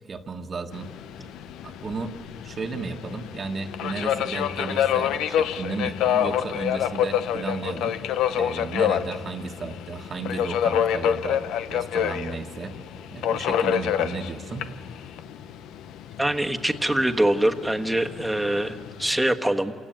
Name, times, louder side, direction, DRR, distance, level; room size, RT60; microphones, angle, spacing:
voice 1, 0.1-1.3 1.6-2.1 2.4-8.0 8.3-11.4 11.7-12.8 13.1-14.7, right 4 dB, 40° right, 5 dB, 1.4 m, -34 dB
Subway metro underground, 0.7-19.2, left 9 dB, 90° left, 0.8 m, -28 dB
voice 2, 16.2-19.7, right 1 dB, 5° right, 6 dB, 1.4 m, -24 dB
27.5 x 16.5 x 9.1 m, 2.2 s
cardioid pair, 90°, 0 cm